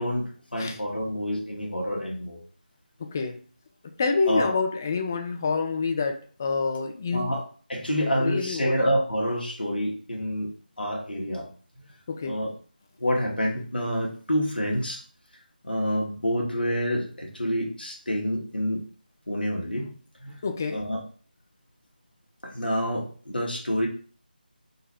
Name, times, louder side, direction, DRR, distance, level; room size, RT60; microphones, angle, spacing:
voice 1, 0.0-2.4 4.2-4.5 7.1-7.4 7.7-10.5 10.8-11.5 12.2-12.5 13.0-15.0 15.6-18.8 19.3-19.9 20.2-20.4 20.7-21.0 22.4-23.9, equal, 70° left, -2 dB, 1.3 m, -27 dB
voice 2, 3.0-3.4 4.0-7.3 8.2-8.7 12.1-12.4 20.4-20.9, left 4 dB, 20° left, 5 dB, 0.3 m, -27 dB
3.9 x 2.2 x 4.2 m, 0.42 s
figure-of-eight pair, 160°, 5 cm